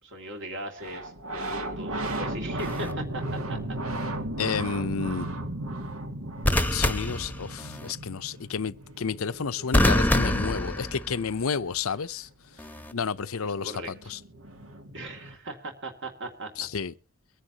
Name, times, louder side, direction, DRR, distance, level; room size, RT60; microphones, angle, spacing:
voice 1, 0.0-3.8 13.4-13.9 14.9-16.7, right 1 dB, 60° right, 2.5 m, -39 dB
sound 1, 0.8-11.2 13.3-13.4 13.6-15.3, right 1 dB, 85° right, 2.4 m, -35 dB
sound 2, 2.6-2.9 6.4-7.9 9.7-11.4 12.6-12.9, left 1 dB, 10° left, 0.9 m, -25 dB
voice 2, 4.4-5.3 6.7-12.3 12.9-14.2 16.6-16.9, left 5 dB, 70° left, 0.7 m, -31 dB
23.0 x 10.0 x 2.9 m
head